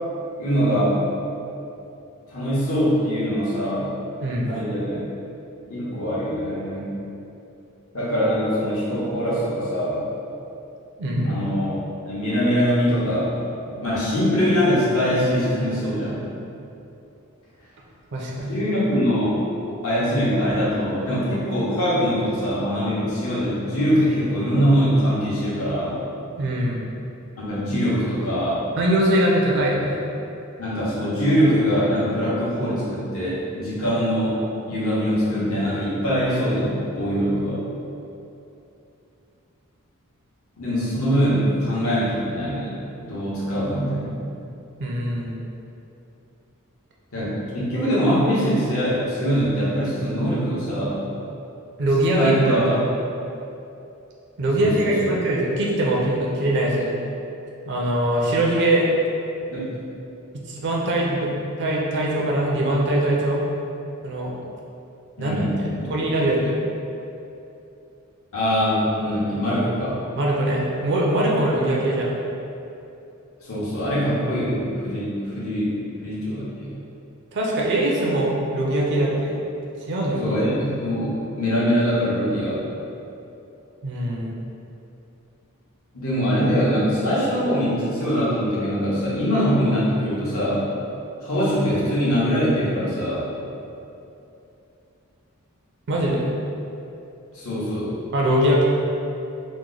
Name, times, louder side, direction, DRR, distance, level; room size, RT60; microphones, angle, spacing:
voice 1, 0.4-1.0 2.3-3.9 4.5-5.0 5.7-6.9 7.9-10.0 11.2-11.8 12.1-16.2 18.4-19.4 19.8-26.0 27.4-28.6 30.6-34.4 34.7-37.6 40.6-42.8 43.0-44.2 47.1-51.0 52.1-52.7 54.6-55.1 59.5-59.6 65.2-65.9 68.3-70.0 73.4-75.7 76.0-76.7 80.2-82.6 85.9-90.6 91.2-93.2 97.3-97.9, equal, 75° left, -9 dB, 1.0 m, -23 dB
voice 2, 11.0-11.4 18.1-18.5 26.4-26.8 28.8-30.0 44.8-45.4 51.8-52.6 54.4-56.9 57.7-58.9 60.5-63.4 64.0-64.3 65.2-66.6 70.2-72.2 77.3-79.4 79.9-80.2 83.8-84.3 95.9-96.3 98.1-98.6, right 1 dB, 55° right, -2 dB, 0.4 m, -22 dB
3.0 x 2.1 x 3.7 m, 2.8 s
head